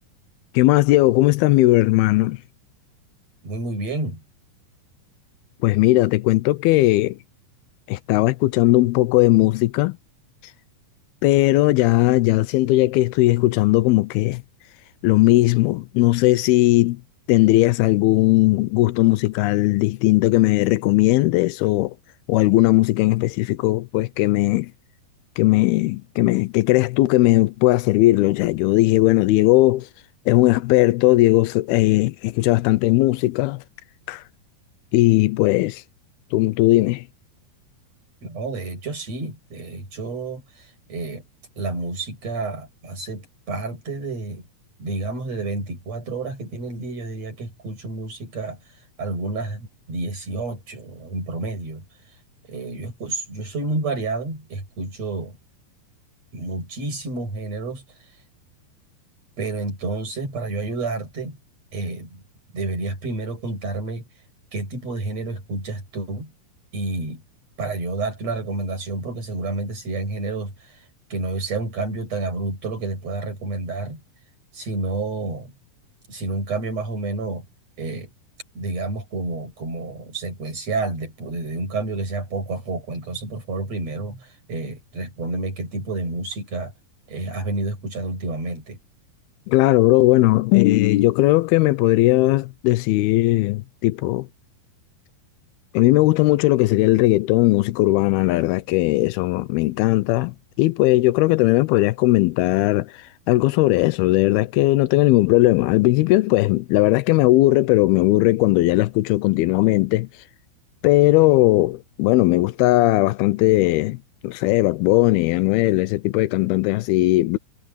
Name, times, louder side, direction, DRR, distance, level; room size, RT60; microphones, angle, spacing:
voice 1, 0.5-2.4 5.6-7.2 7.9-10.0 11.2-14.4 15.0-17.0 17.3-21.9 22.3-24.7 25.4-29.9 30.3-33.6 34.1-34.2 34.9-35.8 36.3-37.0 89.5-94.3 95.7-102.9 103.3-110.1 110.8-117.4, left 18 dB, 90° left, 2.7 m, -18 dB
voice 2, 3.4-4.2 38.2-41.3 41.6-44.5 44.8-48.6 49.0-51.8 52.5-55.4 56.3-57.8 59.4-61.4 61.7-62.2 62.5-64.0 64.5-66.3 66.7-67.2 67.6-70.8 71.1-74.0 74.5-75.5 76.1-77.5 77.8-78.1 78.6-86.7 87.1-88.8, right 3 dB, 40° right, 9.0 m, -29 dB
omnidirectional pair, 4.3 m